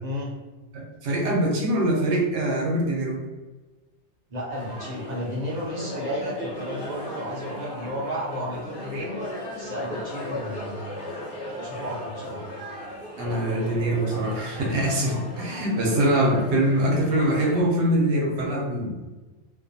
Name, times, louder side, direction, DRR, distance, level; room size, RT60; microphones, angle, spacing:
voice 1, 0.0-0.3 4.3-9.2 9.5-10.8 11.6-12.5, equal, 50° right, -4 dB, 0.6 m, -32 dB
voice 2, 0.7-3.2 8.9-9.1 13.2-19.0, right 1 dB, 85° right, -1 dB, 0.9 m, -23 dB
sound 1, 4.5-17.6, left 1 dB, 30° left, 0.6 m, -37 dB
2.5 x 2.1 x 2.6 m, 1.2 s
omnidirectional pair, 1.2 m